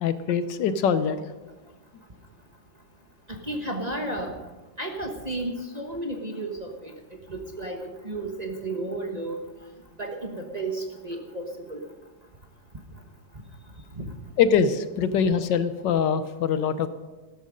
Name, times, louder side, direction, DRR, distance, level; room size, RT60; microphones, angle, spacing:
voice 1, 0.0-1.2 14.4-16.9, left 7 dB, 70° left, 12 dB, 1.3 m, -23 dB
voice 2, 3.3-4.4 4.8-6.9 7.3-9.4 10.0-11.8 13.9-14.1, right 2 dB, 25° right, 2 dB, 1.1 m, -33 dB
13.5 x 13.0 x 5.2 m, 1.3 s
omnidirectional pair, 2.1 m